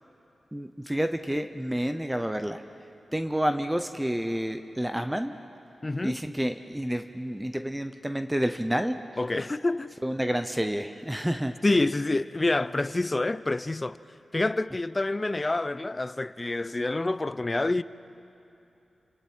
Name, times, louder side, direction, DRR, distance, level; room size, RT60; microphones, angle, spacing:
voice 1, 0.5-2.6 3.1-5.3 6.0-9.0 10.0-11.5, equal, 10° right, 0.8 m, -29 dB
voice 2, 5.8-6.2 9.2-9.9 11.6-14.0 14.3-17.8, left 2 dB, 25° left, 0.5 m, -27 dB
29.5 x 26.5 x 4.6 m
wide cardioid pair, 90°, 0 cm